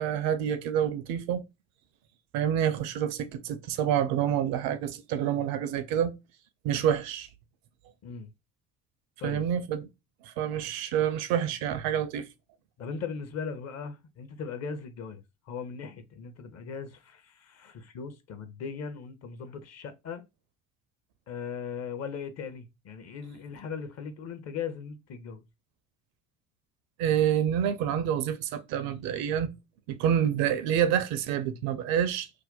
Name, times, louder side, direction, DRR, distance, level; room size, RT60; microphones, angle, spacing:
voice 1, 0.0-1.4 2.3-6.1 6.6-7.3 9.2-9.9 10.2-12.3 27.0-29.5 29.9-32.3, right 9 dB, 55° right, 0.5 m, -27 dB
voice 2, 12.8-20.2 21.3-25.4, left 6 dB, 35° left, 0.6 m, -38 dB
2.6 x 2.1 x 3.7 m
figure-of-eight pair, 55°, 46 cm